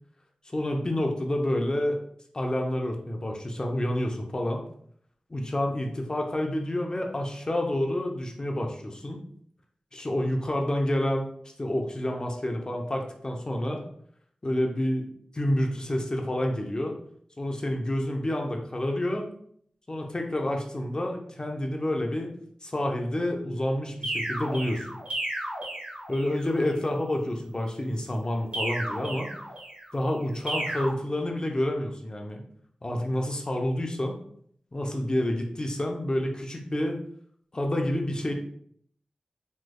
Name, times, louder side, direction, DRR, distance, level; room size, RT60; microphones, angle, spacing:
voice 1, 0.5-2.0 2.3-4.6 5.3-9.2 9.9-11.3 11.6-13.8 14.4-15.1 15.3-16.9 17.4-19.3 19.9-22.3 22.6-24.9 26.1-29.3 29.9-32.4 32.8-34.2 34.7-37.0 37.5-38.3, left 1 dB, 35° left, 2 dB, 0.6 m, -28 dB
sound 1, 24.0-26.4 28.5-29.9 30.5-30.9, right 1 dB, 60° right, 1.3 m, -33 dB
3.2 x 3.0 x 2.2 m, 0.64 s
cardioid pair, 50°, 2 cm